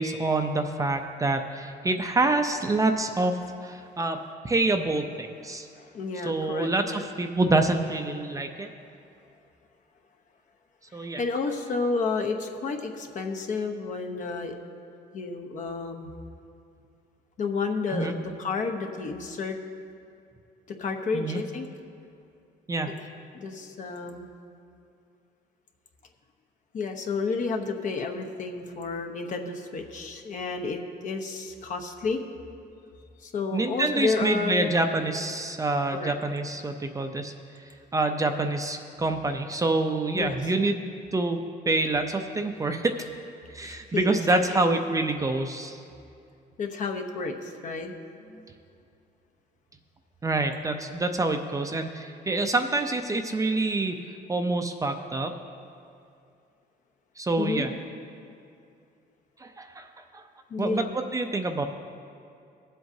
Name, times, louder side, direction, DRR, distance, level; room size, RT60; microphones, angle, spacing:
voice 1, 0.0-5.7 6.2-8.7 10.9-11.2 17.9-18.1 21.1-21.4 22.7-22.9 33.5-37.3 37.9-40.8 41.1-41.4 41.7-42.9 43.5-45.8 50.2-54.0 54.3-55.3 57.2-57.7 59.4-59.9 60.1-60.2 60.6-61.7, right 2 dB, 20° right, 5 dB, 0.6 m, -26 dB
voice 2, 5.8-7.1 10.9-14.5 15.1-16.1 17.4-19.6 20.8-21.7 23.3-24.3 26.7-32.2 33.2-34.7 35.9-36.1 40.1-40.4 43.6-44.7 46.6-48.0 48.2-48.4 57.4-57.7 60.5-60.9, left 4 dB, 50° left, 4 dB, 1.0 m, -31 dB
18.0 x 7.7 x 2.7 m, 2.5 s
cardioid pair, 110°, 17 cm